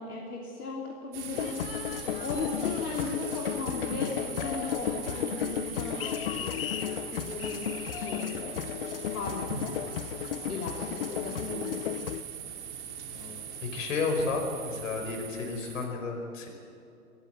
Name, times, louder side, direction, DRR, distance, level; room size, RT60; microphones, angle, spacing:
voice 1, 0.0-1.6 2.2-6.5 7.1-8.6 9.1-9.7 10.5-11.9, left 3 dB, 70° left, -2 dB, 3.2 m, -37 dB
sound 1, 1.1-15.9, right 7 dB, 45° right, 3.0 m, -41 dB
sound 2, 1.3-12.2, left 11 dB, 40° left, 0.6 m, -34 dB
voice 2, 13.7-16.5, left 4 dB, 55° left, 3 dB, 5.1 m, -32 dB
22.0 x 15.0 x 8.0 m, 2.7 s
hypercardioid pair, 135°, 46 cm